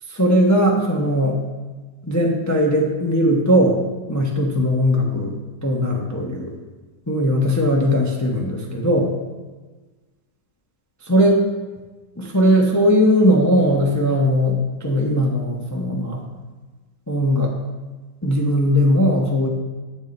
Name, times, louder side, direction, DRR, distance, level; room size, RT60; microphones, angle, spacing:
voice 1, 0.1-1.4 2.0-3.8 4.1-5.3 5.6-6.5 7.1-9.1 11.0-11.4 12.2-16.2 17.1-17.5 18.2-19.5, equal, 20° left, -1 dB, 0.5 m, -18 dB
8.2 x 6.4 x 4.3 m, 1.3 s
omnidirectional pair, 2.1 m